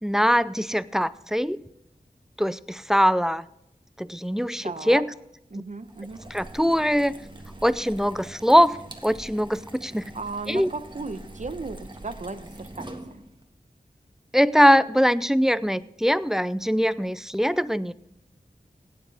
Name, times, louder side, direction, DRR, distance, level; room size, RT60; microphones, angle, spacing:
voice 1, 0.0-1.6 2.4-3.4 4.0-5.1 6.3-7.1 7.6-8.8 9.0-10.0 10.5-10.7 14.3-17.9, equal, 5° right, 16 dB, 0.5 m, -22 dB
voice 2, 4.6-5.0 5.5-6.2 10.1-13.2, right 3 dB, 50° right, 11 dB, 0.9 m, -35 dB
sound 1, 5.8-13.4, right 1 dB, 30° right, 1.7 m, -43 dB
17.0 x 9.6 x 3.5 m, 0.79 s
wide cardioid pair, 50°, 16 cm